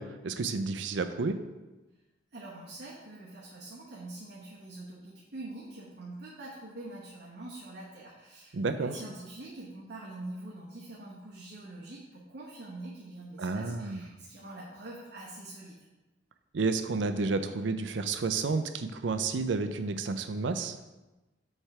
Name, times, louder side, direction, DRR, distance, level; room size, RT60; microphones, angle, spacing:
voice 1, 0.0-1.4 8.5-8.9 13.4-14.1 16.5-20.8, right 4 dB, 80° right, 9 dB, 0.5 m, -31 dB
voice 2, 2.3-15.8, right 2 dB, 65° right, -6 dB, 1.1 m, -44 dB
7.3 x 3.3 x 4.8 m, 1.1 s
head